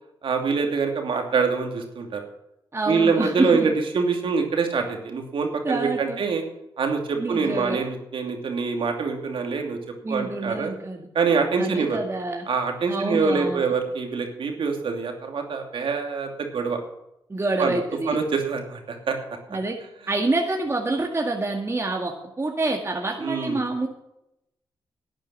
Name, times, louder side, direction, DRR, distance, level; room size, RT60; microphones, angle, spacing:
voice 1, 0.2-2.2 2.9-6.4 6.8-9.8 10.1-10.7 11.1-12.0 12.5-16.8 17.6-17.8 18.1-19.2 23.2-23.6, right 5 dB, 65° right, 3 dB, 2.7 m, -25 dB
voice 2, 2.7-3.7 5.6-6.2 7.2-7.8 10.0-11.1 11.6-12.4 12.9-13.7 17.3-18.2 19.5-19.8 20.1-23.9, right 2 dB, 30° right, 1 dB, 2.0 m, -27 dB
11.5 x 9.1 x 7.4 m, 0.85 s
supercardioid pair, 50°, 9 cm